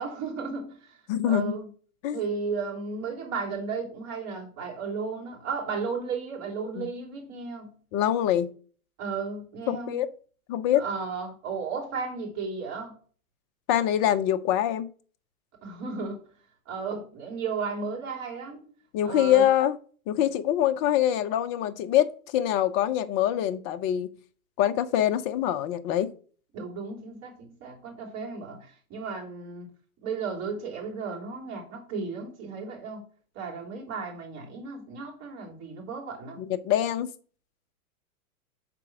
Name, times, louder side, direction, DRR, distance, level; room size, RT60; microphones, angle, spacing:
voice 1, 0.0-1.7 2.1-7.7 9.0-10.0 10.7-13.0 15.6-16.2 16.6-18.7 19.0-19.4 20.1-20.2 26.5-29.7 30.0-33.0 33.3-36.4, right 5 dB, 35° right, 3.1 m, -34 dB
voice 2, 1.1-1.6 2.0-2.2 6.8-6.9 7.9-8.5 9.7-10.1 10.5-10.8 13.7-14.9 18.9-19.8 20.1-24.1 24.6-26.1 36.4-37.1, left 11 dB, 25° left, 0.4 m, -24 dB
6.0 x 4.1 x 6.0 m
hypercardioid pair, 120°, 44 cm